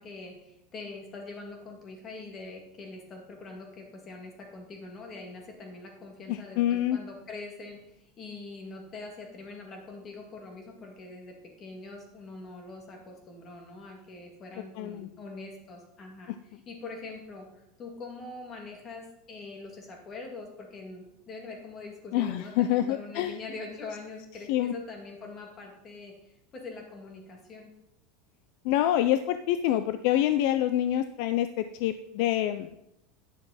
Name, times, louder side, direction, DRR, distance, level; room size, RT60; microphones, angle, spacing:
voice 1, 0.0-26.2 26.5-27.7, left 3 dB, 30° left, 2 dB, 2.3 m, -43 dB
voice 2, 6.3-7.0 14.8-15.1 22.1-23.4 24.5-24.7 28.6-32.7, left 12 dB, 65° left, 11 dB, 0.4 m, -26 dB
10.0 x 6.6 x 4.2 m, 0.82 s
supercardioid pair, 130°, 0 cm